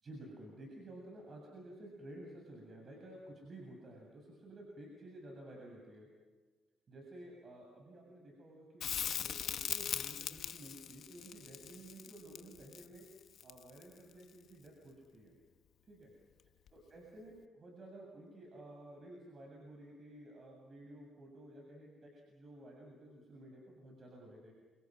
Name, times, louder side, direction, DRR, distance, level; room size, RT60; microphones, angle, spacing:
voice 1, 0.0-6.1 6.9-13.0 13.4-15.4 15.9-16.1 16.7-24.5, right 1 dB, 40° right, 0 dB, 7.5 m, -53 dB
Crackle, 8.8-13.9 16.7-16.8, left 9 dB, 70° left, 1.2 m, -40 dB
30.0 x 28.0 x 6.3 m, 1.3 s
cardioid pair, 90°, 0 cm